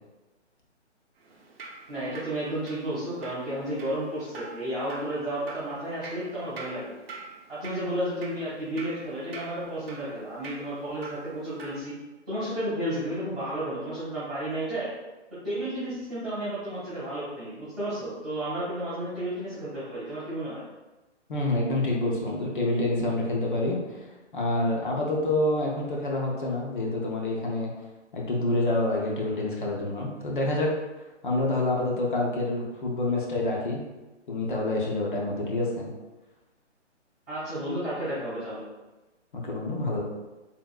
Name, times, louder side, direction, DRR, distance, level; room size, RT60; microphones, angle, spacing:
Drip, 1.2-11.8, right 3 dB, 55° right, 0.7 m, -45 dB
voice 1, 1.9-6.9 7.5-11.9 12.3-14.9 15.4-20.6 37.3-38.6, right 1 dB, 5° right, -22 dB, 0.4 m, -32 dB
voice 2, 21.3-27.7 28.1-30.7 31.2-33.8 34.3-35.9 39.3-40.0, left 2 dB, 45° left, -2 dB, 0.6 m, -27 dB
3.5 x 2.5 x 2.2 m, 1.1 s
hypercardioid pair, 155°, 36 cm